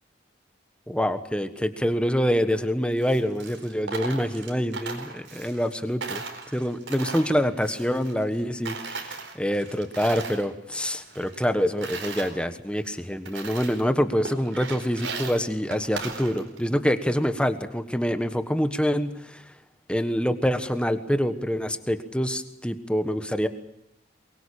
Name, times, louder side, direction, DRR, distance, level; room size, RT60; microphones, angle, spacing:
voice 1, 0.9-6.2 6.5-19.4 19.9-23.5, equal, 5° left, 10 dB, 1.3 m, -26 dB
Coin (dropping), 2.9-5.7 6.0-8.4 8.7-10.5 10.8-12.3 12.8-12.9 13.3-13.9 14.2-16.7, right 4 dB, 85° right, 4.4 m, -37 dB
23.5 x 22.0 x 8.7 m, 0.81 s
head